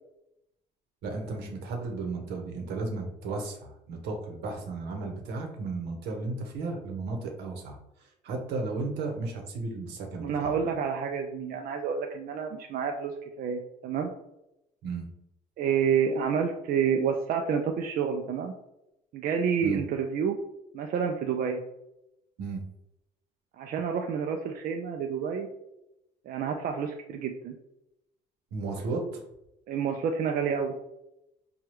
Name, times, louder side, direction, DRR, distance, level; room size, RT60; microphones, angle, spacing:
voice 1, 1.0-7.8 8.2-10.6 14.8-15.1 19.6-19.8 22.4-22.6 28.5-29.2, right 3 dB, 80° right, 2 dB, 0.9 m, -34 dB
voice 2, 10.2-14.1 15.6-18.5 19.1-20.4 20.7-21.6 23.6-25.5 26.3-27.6 29.7-30.7, right 7 dB, 60° right, 3 dB, 0.4 m, -29 dB
4.6 x 2.3 x 3.0 m, 0.87 s
cardioid pair, 110°, 17 cm